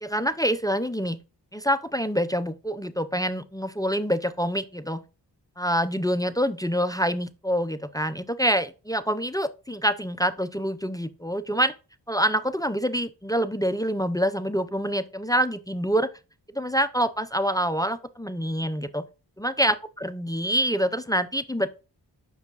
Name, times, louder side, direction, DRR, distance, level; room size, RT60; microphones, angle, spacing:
voice 1, 0.0-1.2 1.5-5.0 5.6-11.7 12.1-16.1 16.5-19.1 19.4-21.7, equal, 10° left, 0.4 m, -26 dB
6.2 x 4.9 x 3.9 m
wide cardioid pair, 60°, 40 cm